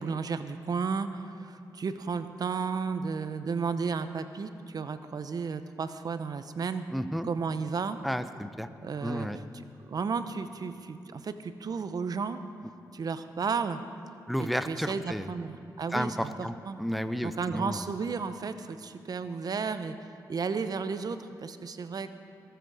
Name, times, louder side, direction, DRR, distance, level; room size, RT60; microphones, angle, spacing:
voice 1, 0.0-6.8 7.2-8.0 8.8-9.3 9.9-12.4 12.9-13.8 14.4-16.3 16.6-16.8 17.2-20.0 20.3-22.1, right 5 dB, 55° right, 10 dB, 0.8 m, -33 dB
voice 2, 6.9-7.3 8.0-8.7 9.0-9.4 14.3-15.3 15.9-17.8, equal, ahead, 11 dB, 0.7 m, -32 dB
21.0 x 8.0 x 4.8 m, 2.6 s
cardioid pair, 55°, 8 cm